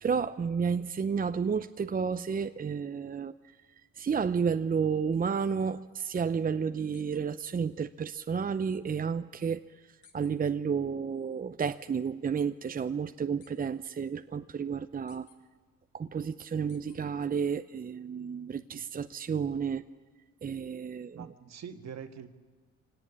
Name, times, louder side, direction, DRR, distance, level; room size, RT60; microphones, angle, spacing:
voice 1, 0.0-3.3 4.0-9.6 10.1-15.3 15.9-19.8 20.4-21.3, right 6 dB, 30° right, 10 dB, 0.7 m, -31 dB
sound 1, 6.9-7.2 10.0-10.3 11.6-11.7 13.4-13.7 15.1-15.4 16.7-17.0, left 7 dB, 75° left, 3.2 m, -59 dB
voice 2, 21.1-22.3, right 7 dB, 60° right, 7 dB, 1.9 m, -44 dB
24.5 x 18.0 x 9.7 m, 1.4 s
cardioid pair, 90°, 30 cm